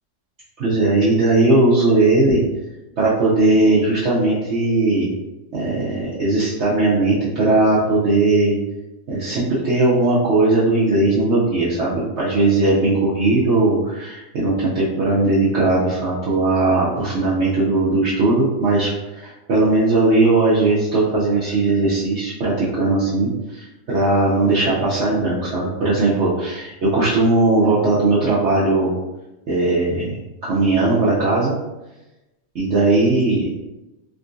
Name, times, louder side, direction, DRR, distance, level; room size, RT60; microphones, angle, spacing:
voice 1, 0.6-2.4 3.0-5.1 5.5-8.6 9.1-28.9 29.5-31.5 32.5-33.5, right 2 dB, 80° right, -8 dB, 0.6 m, -18 dB
3.6 x 2.5 x 2.3 m, 1.0 s
omnidirectional pair, 2.1 m